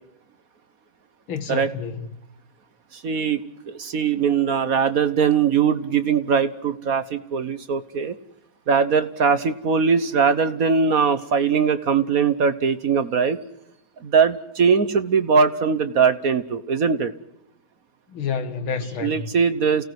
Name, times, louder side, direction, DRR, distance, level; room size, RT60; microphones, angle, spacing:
voice 1, 1.3-2.1 18.1-19.3, left 6 dB, 90° left, 2.8 m, -29 dB
voice 2, 2.9-3.4 3.7-8.2 8.7-13.4 14.0-17.1 19.0-19.8, right 6 dB, 50° right, 1.3 m, -21 dB
29.5 x 18.0 x 7.9 m
omnidirectional pair, 2.2 m